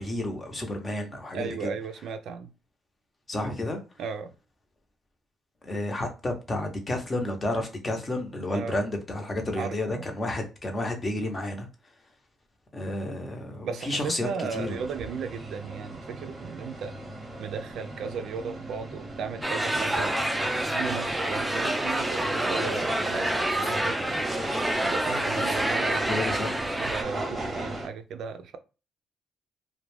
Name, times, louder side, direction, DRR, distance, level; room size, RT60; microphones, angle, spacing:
voice 1, 0.0-1.7 3.3-3.8 5.6-11.7 12.7-14.8 26.0-26.6, left 1 dB, 30° left, 0.7 m, -31 dB
voice 2, 1.3-2.5 4.0-4.3 8.5-8.8 9.6-10.1 13.6-16.9 17.4-20.2 20.7-24.0 24.8-26.3 26.8-28.6, right 6 dB, 75° right, 0.3 m, -36 dB
sound 1, 14.5-27.9, right 2 dB, 25° right, 0.7 m, -36 dB
sound 2, 19.4-27.0, right 1 dB, 5° right, 0.4 m, -28 dB
2.3 x 2.1 x 3.1 m
cardioid pair, 90°, 0 cm